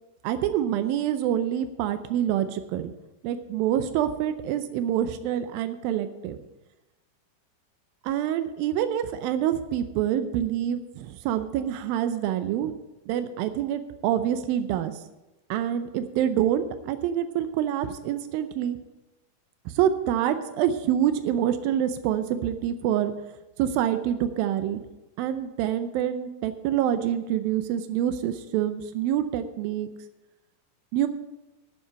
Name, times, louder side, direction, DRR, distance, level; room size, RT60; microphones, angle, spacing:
voice 1, 0.2-2.9 3.2-6.4 8.0-12.7 13.1-14.9 15.5-18.8 19.8-23.1 23.6-24.8 25.2-29.9 30.9-31.1, right 10 dB, 85° right, 10 dB, 2.5 m, -26 dB
12.0 x 5.7 x 8.3 m, 1.1 s
omnidirectional pair, 4.1 m